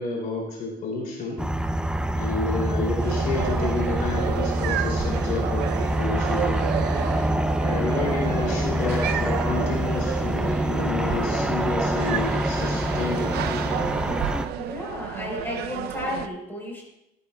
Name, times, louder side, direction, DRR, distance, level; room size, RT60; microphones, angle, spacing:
voice 1, 0.0-1.4 2.1-6.7 7.6-13.8, left 3 dB, 55° left, -3 dB, 2.7 m, -30 dB
sound 1, 1.4-14.5, right 1 dB, 5° right, 0.5 m, -26 dB
sound 2, 3.0-16.3, right 10 dB, 70° right, 0.5 m, -32 dB
voice 2, 14.6-16.8, left 2 dB, 10° left, -2 dB, 3.9 m, -33 dB
12.5 x 11.0 x 2.2 m, 0.89 s
cardioid pair, 110°, 17 cm